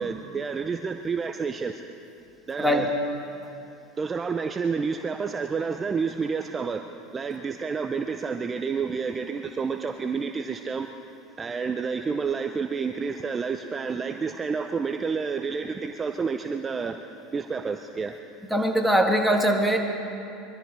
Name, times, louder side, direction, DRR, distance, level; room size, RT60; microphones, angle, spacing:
voice 1, 0.0-1.8 2.5-2.9 4.0-10.9 11.4-17.0 17.3-18.2, right 5 dB, 25° right, 6 dB, 0.7 m, -29 dB
voice 2, 18.5-19.8, right 1 dB, ahead, 1 dB, 2.1 m, -21 dB
22.5 x 13.0 x 4.8 m, 2.8 s
hypercardioid pair, 95°, 0 cm